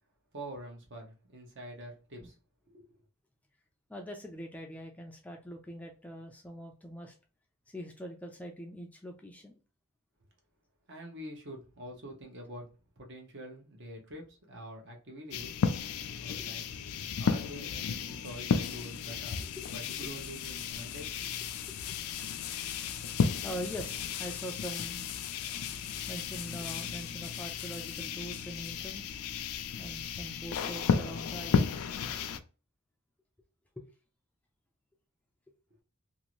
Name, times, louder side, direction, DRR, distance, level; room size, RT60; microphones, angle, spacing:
voice 1, 0.3-2.4 2.7-2.9 10.9-15.5 16.2-16.6 17.1-19.4 19.7-21.3, right 1 dB, 55° right, 0.9 m, -46 dB
voice 2, 3.9-7.1 7.7-9.6 19.4-19.7 21.7-21.9 23.4-25.0 26.1-29.2 29.8-31.8 33.8-33.9, equal, 5° left, 0.3 m, -43 dB
sound 1, 15.3-32.4, left 6 dB, 80° left, 0.4 m, -34 dB
2.7 x 2.5 x 2.9 m
head